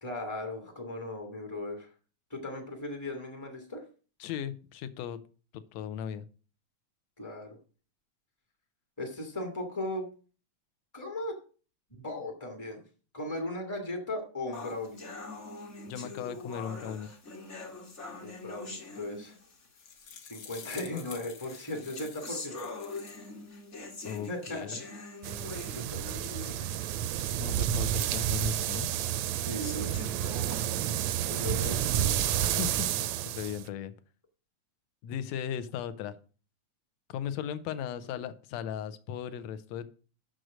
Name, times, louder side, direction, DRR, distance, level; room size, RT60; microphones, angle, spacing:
voice 1, 0.0-1.9 2.3-3.8 7.2-7.6 9.0-10.1 10.9-11.3 12.0-12.8 13.1-15.0 18.2-19.4 20.2-22.7 24.3-24.9 25.8-26.9 29.3-29.9 31.2-32.1, left 1 dB, 15° left, 2 dB, 0.6 m, -37 dB
voice 2, 4.2-5.2 5.7-6.2 15.9-17.1 24.0-24.8 27.4-28.9 32.6-32.9 33.3-33.9 35.0-36.2 37.1-39.9, left 9 dB, 75° left, 12 dB, 1.8 m, -37 dB
sound 1, 14.5-19.7 20.5-20.6 21.4-26.7 27.1-27.2 27.7-27.8 28.5-28.6 29.4-30.5, left 3 dB, 40° left, 1.0 m, -43 dB
sound 2, 19.5-23.3 23.7-24.3, left 7 dB, 60° left, 1.6 m, -49 dB
sound 3, 25.2-33.6, right 11 dB, 80° right, 1.7 m, -30 dB
6.5 x 6.3 x 6.1 m, 0.38 s
omnidirectional pair, 3.5 m